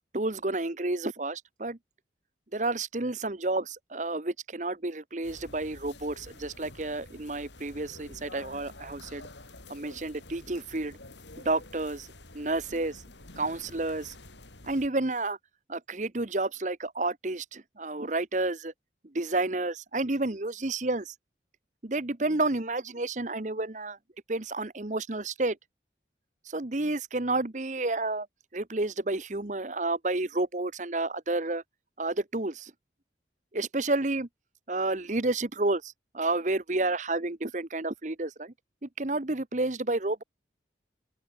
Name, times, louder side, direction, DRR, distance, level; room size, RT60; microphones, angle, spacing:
voice 1, 0.1-1.8 2.5-9.3 9.7-11.0 11.4-12.1 12.3-13.0 13.4-14.1 14.6-15.4 15.7-18.7 19.1-21.1 21.8-24.0 24.3-25.6 26.5-28.3 28.5-31.6 32.0-32.7 33.5-34.3 34.7-38.5 38.8-40.2, right 2 dB, 40° right, 1.1 m, -30 dB
sound 1, 5.2-14.9, left 2 dB, 80° left, 6.4 m, -49 dB
open air
head